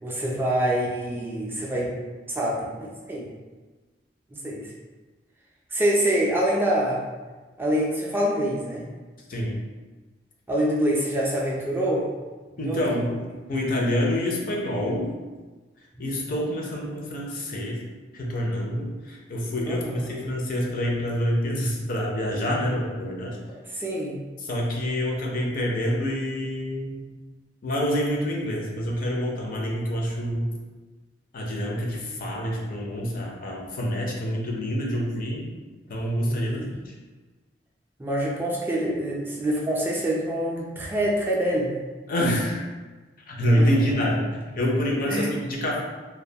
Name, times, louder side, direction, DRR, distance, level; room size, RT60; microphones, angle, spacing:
voice 1, 0.0-2.0 2.3-3.3 4.3-4.7 5.7-7.0 7.6-8.8 10.5-12.1 12.6-13.0 16.0-16.2 19.6-20.1 23.7-24.2 36.2-36.7 38.0-41.8 43.6-43.7 45.1-45.3, right 1 dB, 10° right, -4 dB, 0.3 m, -26 dB
voice 2, 9.3-9.6 12.6-13.1 13.5-15.1 16.0-17.8 18.1-23.4 24.4-27.1 27.6-30.5 31.3-35.5 35.9-36.9 42.1-42.6 43.3-45.8, equal, 50° left, -1 dB, 0.5 m, -27 dB
2.3 x 2.2 x 2.6 m, 1.3 s
head